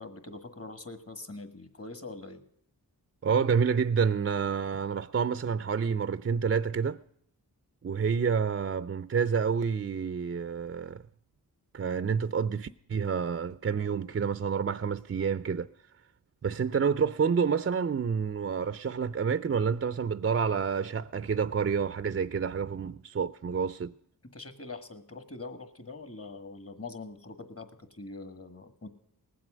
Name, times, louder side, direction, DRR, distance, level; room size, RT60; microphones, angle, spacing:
voice 1, 0.0-2.4 24.3-28.9, left 3 dB, 35° left, 1.7 m, -43 dB
voice 2, 3.2-7.0 7.8-11.0 11.7-15.7 16.4-23.9, right 6 dB, 35° right, 0.4 m, -28 dB
19.0 x 7.7 x 6.2 m
cardioid pair, 55°, 39 cm